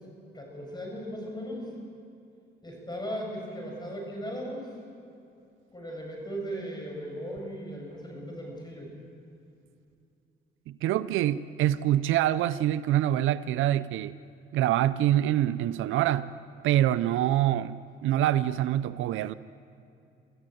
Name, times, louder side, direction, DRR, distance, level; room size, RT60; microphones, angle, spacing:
voice 1, 0.3-1.7 2.6-4.7 5.7-8.9, equal, 20° left, 0 dB, 7.4 m, -37 dB
voice 2, 10.7-14.2 14.5-16.3 16.6-19.3, right 12 dB, 85° right, 15 dB, 0.5 m, -25 dB
25.0 x 14.5 x 7.8 m, 2.6 s
cardioid pair, 90°, 20 cm